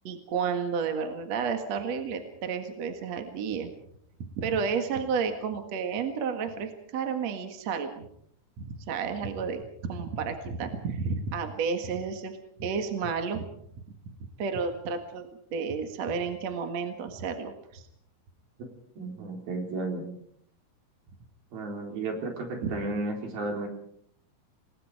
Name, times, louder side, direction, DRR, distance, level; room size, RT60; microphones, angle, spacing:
voice 1, 0.0-3.7 4.3-8.1 8.6-13.4 14.1-17.9 22.6-22.7, right 5 dB, 50° right, 6 dB, 2.7 m, -31 dB
voice 2, 19.0-20.1 21.5-23.7, right 2 dB, 75° right, 3 dB, 5.8 m, -33 dB
28.0 x 20.0 x 4.9 m, 0.67 s
omnidirectional pair, 4.4 m